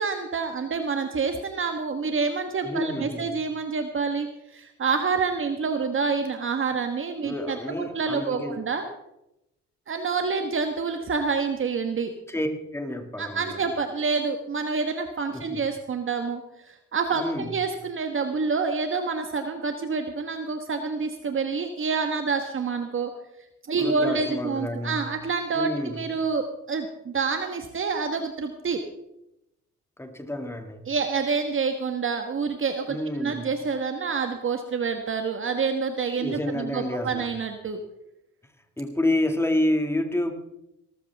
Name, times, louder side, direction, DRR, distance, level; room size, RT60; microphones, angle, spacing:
voice 1, 0.0-7.6 7.9-8.8 9.9-12.1 13.2-23.1 23.7-28.8 30.9-33.0 33.2-37.8, right 5 dB, 45° right, 6 dB, 1.5 m, -27 dB
voice 2, 2.6-3.4 7.2-8.6 12.3-13.7 15.3-15.7 17.1-17.6 23.8-25.1 25.5-26.1 30.0-30.9 32.9-33.5 36.2-37.3 38.8-40.3, left 1 dB, 10° left, 5 dB, 2.3 m, -29 dB
19.0 x 13.5 x 3.6 m, 0.85 s
cardioid pair, 90°, 30 cm